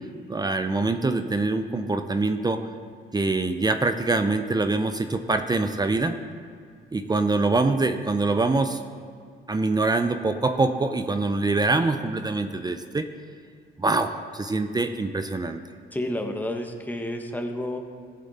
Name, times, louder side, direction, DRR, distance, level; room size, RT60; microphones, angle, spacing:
voice 1, 0.3-2.6 3.1-6.2 6.9-8.8 9.5-13.1 13.8-15.6, right 3 dB, 20° right, 8 dB, 0.6 m, -24 dB
voice 2, 15.9-17.8, left 1 dB, 10° left, 3 dB, 1.3 m, -30 dB
15.0 x 7.5 x 4.2 m, 2.2 s
cardioid pair, 90°, 20 cm